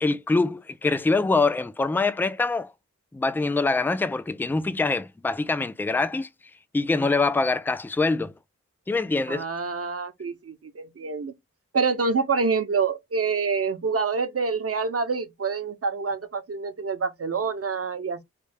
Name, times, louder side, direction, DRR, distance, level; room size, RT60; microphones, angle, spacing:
voice 1, 0.0-2.7 3.1-6.3 6.7-8.3 8.9-9.4, left 3 dB, 5° left, 0.3 m, -24 dB
voice 2, 9.3-11.3 11.7-18.2, right 5 dB, 50° right, 0.7 m, -27 dB
3.2 x 2.3 x 3.3 m
wide cardioid pair, 50°, 31 cm